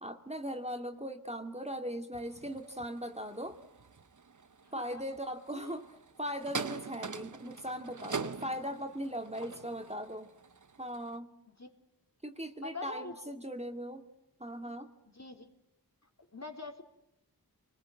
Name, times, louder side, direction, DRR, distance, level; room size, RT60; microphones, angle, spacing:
voice 1, 0.0-3.6 4.7-5.9 6.2-10.3 10.8-11.3 12.2-14.0 14.4-14.9, equal, 15° right, 5 dB, 2.2 m, -39 dB
sound 1, 2.1-11.2, right 5 dB, 50° right, 1.0 m, -44 dB
voice 2, 4.6-5.0 5.5-5.8 9.5-9.6 9.8-10.0 11.6-11.7 12.6-13.2 15.1-15.5 16.3-16.8, left 2 dB, 45° left, 4 dB, 3.6 m, -44 dB
27.5 x 21.0 x 7.6 m, 0.86 s
wide cardioid pair, 60°, 38 cm